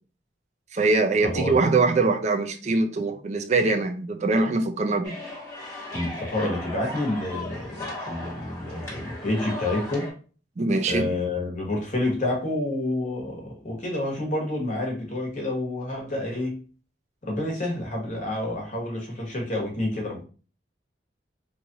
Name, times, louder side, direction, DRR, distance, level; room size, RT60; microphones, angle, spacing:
voice 1, 0.7-5.2 10.6-11.1, right 3 dB, 40° right, 0.4 m, -23 dB
voice 2, 1.2-1.6 5.9-10.1 10.9-16.6 17.2-20.2, left 1 dB, 45° left, 1.2 m, -29 dB
sound 1, 5.0-10.1, left 2 dB, 15° left, 1.2 m, -37 dB
3.0 x 2.5 x 3.9 m
head